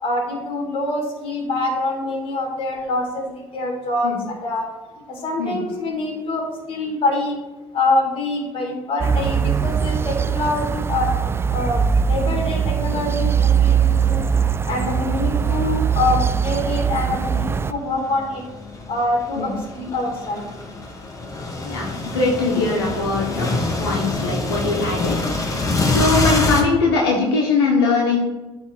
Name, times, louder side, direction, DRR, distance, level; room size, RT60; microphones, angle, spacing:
voice 1, 0.0-4.6 5.1-7.4 7.7-11.1 11.5-14.3 14.7-18.4 18.9-20.4, left 2 dB, 45° left, 1 dB, 2.3 m, -25 dB
sound 1, 9.0-17.7, right 7 dB, 20° right, 0.3 m, -21 dB
sound 2, 12.4-13.3 13.9-26.6, left 2 dB, 25° left, 1.7 m, -26 dB
voice 2, 21.6-25.5 25.9-28.2, left 3 dB, 90° left, -2 dB, 1.1 m, -21 dB
8.8 x 3.5 x 4.8 m, 1.1 s
hypercardioid pair, 65°, 13 cm